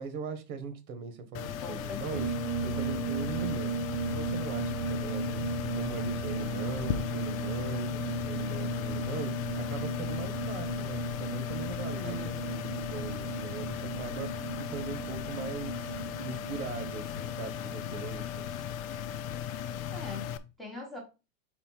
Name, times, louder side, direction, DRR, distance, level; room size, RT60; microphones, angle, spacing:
voice 1, 0.0-2.3 2.6-3.7 4.0-18.6, right 5 dB, 75° right, 1.4 m, -40 dB
sound 1, 1.3-20.4, left 10 dB, 65° left, 0.7 m, -36 dB
voice 2, 1.6-2.5 12.0-12.7 19.9-21.0, left 1 dB, ahead, 0.9 m, -43 dB
sound 2, 2.1-16.9, right 6 dB, 30° right, 0.7 m, -36 dB
5.0 x 4.3 x 4.4 m
supercardioid pair, 175°, 44 cm